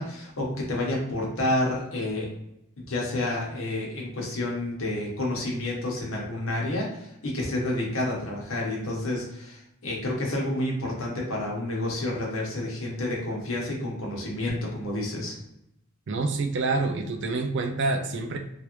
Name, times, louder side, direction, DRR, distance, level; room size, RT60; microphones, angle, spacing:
voice 1, 0.0-2.3 2.8-15.4, left 1 dB, 70° left, -2 dB, 1.0 m, -29 dB
voice 2, 16.1-18.4, right 3 dB, 55° right, 5 dB, 0.4 m, -27 dB
3.1 x 2.5 x 3.0 m, 0.82 s
head